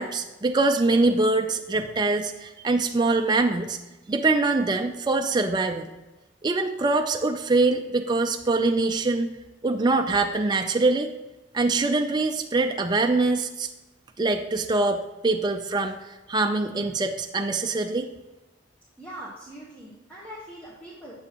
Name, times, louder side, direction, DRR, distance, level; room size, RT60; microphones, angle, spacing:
voice 1, 0.0-3.8 4.1-5.8 6.4-9.3 9.6-11.1 11.5-13.7 14.2-16.0 16.3-18.1, right 3 dB, 20° right, 5 dB, 0.3 m, -23 dB
voice 2, 19.0-21.1, right 1 dB, 10° left, -6 dB, 1.1 m, -42 dB
8.6 x 6.9 x 2.9 m, 1.1 s
head